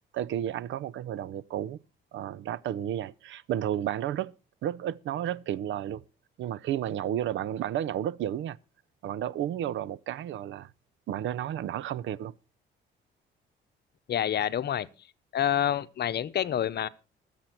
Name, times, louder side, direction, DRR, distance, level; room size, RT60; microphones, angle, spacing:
voice 1, 0.1-1.8 2.1-4.3 4.6-6.0 6.4-8.6 9.0-10.7 11.1-12.3, right 11 dB, 75° right, 0.6 m, -32 dB
voice 2, 14.1-14.9 15.3-16.9, left 10 dB, 55° left, 0.8 m, -27 dB
21.0 x 7.4 x 4.5 m
cardioid pair, 90°, 20 cm